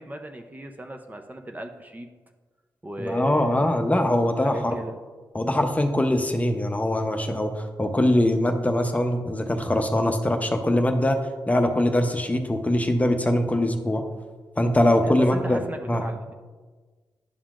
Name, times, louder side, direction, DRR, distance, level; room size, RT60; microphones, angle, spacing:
voice 1, 0.0-2.1 2.8-3.8 4.3-5.0 15.0-16.3, right 1 dB, 20° right, 4 dB, 0.6 m, -36 dB
voice 2, 3.0-4.7 5.3-11.2 11.5-14.0 14.6-16.0, left 1 dB, 20° left, 5 dB, 0.7 m, -22 dB
10.0 x 5.6 x 2.4 m, 1.4 s
cardioid pair, 60°, 8 cm